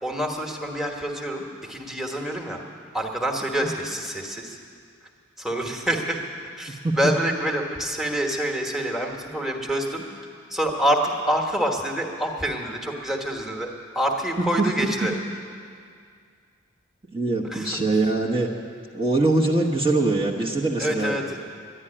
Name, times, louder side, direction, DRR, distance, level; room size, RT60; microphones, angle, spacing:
voice 1, 0.0-2.6 2.9-4.6 5.4-6.2 6.6-10.0 10.5-15.1 17.5-17.8 20.8-21.2, right 1 dB, ahead, 0 dB, 1.3 m, -26 dB
voice 2, 17.1-18.5 18.9-21.4, right 2 dB, 30° right, -1 dB, 1.0 m, -23 dB
11.0 x 11.0 x 9.9 m, 2.2 s
head